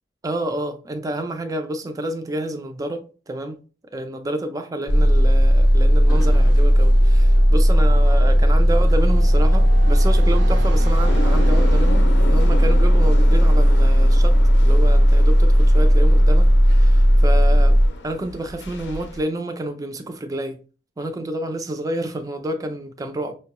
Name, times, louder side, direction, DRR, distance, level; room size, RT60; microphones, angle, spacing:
voice 1, 0.2-3.6 3.9-20.6 21.0-23.4, right 1 dB, 20° right, 0.4 m, -29 dB
sound 1, 4.9-17.9, equal, 25° left, 0.6 m, -15 dB
sound 2, 6.6-12.1, right 2 dB, 85° right, 0.6 m, -38 dB
sound 3, 11.1-19.2, left 1 dB, 70° left, 0.5 m, -33 dB
5.2 x 2.2 x 2.9 m
head